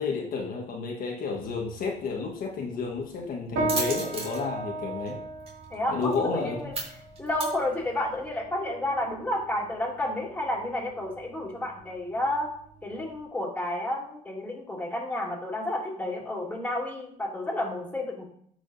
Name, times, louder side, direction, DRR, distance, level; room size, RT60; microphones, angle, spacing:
voice 1, 0.0-5.2 5.9-6.6, left 4 dB, 60° left, -1 dB, 1.4 m, -31 dB
sound 1, 1.4-8.3, right 3 dB, 35° right, 2.2 m, -39 dB
sound 2, 3.6-13.2, right 2 dB, 85° right, 2.7 m, -37 dB
voice 2, 5.7-6.7 7.2-12.5 12.8-18.3, left 1 dB, 10° left, -3 dB, 2.7 m, -31 dB
12.0 x 4.9 x 2.7 m, 0.63 s
cardioid pair, 110°, 17 cm